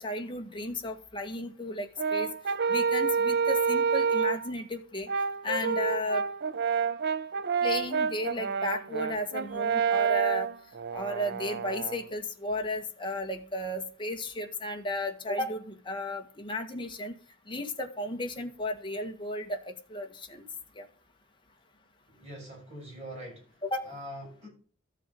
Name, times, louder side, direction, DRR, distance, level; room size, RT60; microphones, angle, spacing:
voice 1, 0.0-2.3 2.7-5.1 5.4-6.2 7.6-10.5 10.9-17.2 17.5-20.4 20.8-20.9 23.6-23.9, left 1 dB, 25° left, 1.8 m, -34 dB
Brass instrument, 2.0-4.5 5.1-12.0, right 6 dB, 55° right, 0.6 m, -28 dB
voice 2, 22.1-23.4 23.9-24.5, equal, 35° right, 7.9 m, -43 dB
13.5 x 7.5 x 5.4 m
head